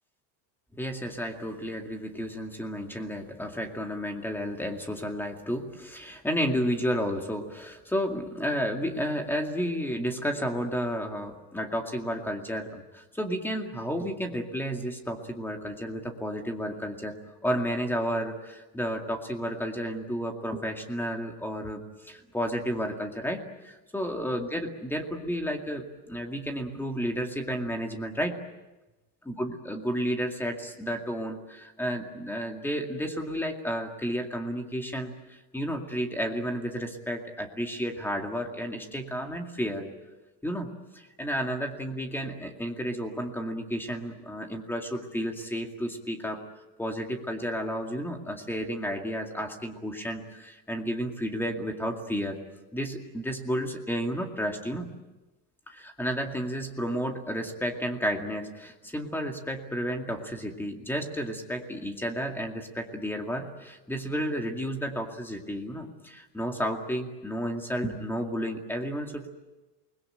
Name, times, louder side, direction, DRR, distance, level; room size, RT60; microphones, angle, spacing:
voice 1, 0.7-17.1 17.4-28.4 29.3-39.9 40.4-46.4 46.8-52.4 52.7-54.9 55.7-69.3, equal, 5° left, 3 dB, 2.2 m, -32 dB
28.5 x 21.0 x 8.8 m, 1.1 s
cardioid pair, 165°, 48 cm